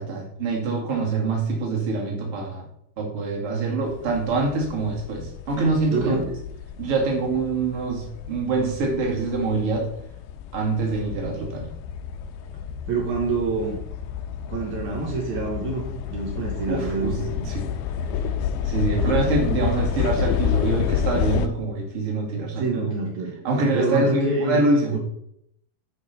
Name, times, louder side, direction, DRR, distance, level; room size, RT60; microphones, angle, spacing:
voice 1, 0.0-2.7 3.0-6.2 6.8-9.9 10.5-11.7 16.7-17.7 18.6-23.0 23.4-25.0, right 3 dB, 45° right, 0 dB, 1.9 m, -25 dB
sound 1, 3.9-21.5, left 8 dB, 80° left, 2.5 m, -29 dB
voice 2, 5.9-6.2 12.9-13.8 14.5-17.2 22.6-23.3 23.7-25.0, right 4 dB, 80° right, -2 dB, 1.7 m, -27 dB
11.5 x 5.3 x 4.0 m, 0.75 s
omnidirectional pair, 5.2 m